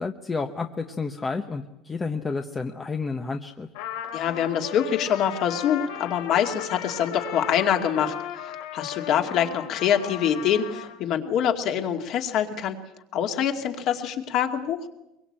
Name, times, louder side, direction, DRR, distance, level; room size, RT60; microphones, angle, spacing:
voice 1, 0.0-3.7, left 4 dB, 15° left, 6 dB, 0.9 m, -30 dB
Trumpet, 3.7-11.0, left 10 dB, 75° left, 3.2 m, -36 dB
voice 2, 4.1-8.1 8.7-12.8 13.1-14.8, left 9 dB, 40° left, 5 dB, 2.4 m, -25 dB
24.0 x 23.0 x 8.8 m, 0.92 s
cardioid pair, 170°, 0 cm